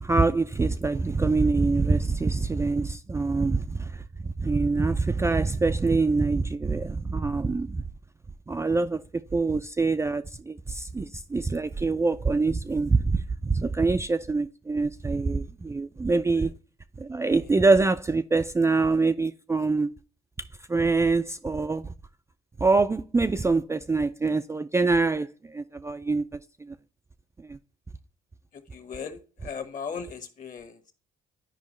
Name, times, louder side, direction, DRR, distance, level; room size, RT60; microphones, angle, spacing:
voice 1, 0.0-3.9 4.2-7.8 8.5-9.0 9.3-16.5 17.0-19.9 20.7-21.9 22.6-25.3 25.5-26.2 27.5-27.6, right 3 dB, 15° right, 0.4 m, -24 dB
voice 2, 28.5-30.9, left 6 dB, 45° left, 1.4 m, -38 dB
10.5 x 4.9 x 3.1 m
supercardioid pair, 70°, 18 cm